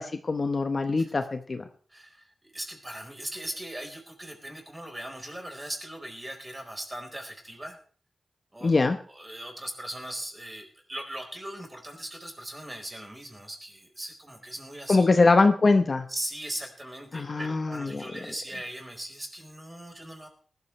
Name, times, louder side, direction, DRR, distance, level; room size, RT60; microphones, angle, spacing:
voice 1, 0.0-1.6 8.6-9.0 14.9-16.1 17.1-18.0, left 3 dB, 45° left, 7 dB, 1.1 m, -23 dB
voice 2, 1.9-7.8 8.5-15.3 16.1-20.3, right 1 dB, 20° right, 3 dB, 4.4 m, -39 dB
20.0 x 13.5 x 3.3 m, 0.42 s
wide cardioid pair, 95°, 0 cm